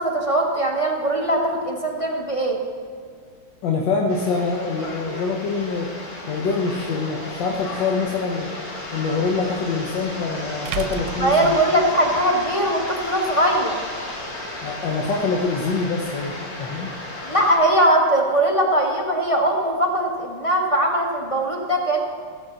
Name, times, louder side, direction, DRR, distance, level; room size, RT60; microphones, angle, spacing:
voice 1, 0.0-2.6 11.2-13.8 17.2-22.0, right 1 dB, 20° left, 0 dB, 1.0 m, -20 dB
voice 2, 3.6-5.9 6.3-8.5 8.9-11.6 14.6-16.9, left 4 dB, 75° left, -1 dB, 1.6 m, -25 dB
sound 1, 4.1-17.6, left 2 dB, 50° left, 3.4 m, -34 dB
sound 2, 6.8-6.9 9.5-9.6 10.7-12.3, right 9 dB, 75° right, 1.2 m, -32 dB
16.0 x 7.4 x 3.9 m, 2.1 s
omnidirectional pair, 2.1 m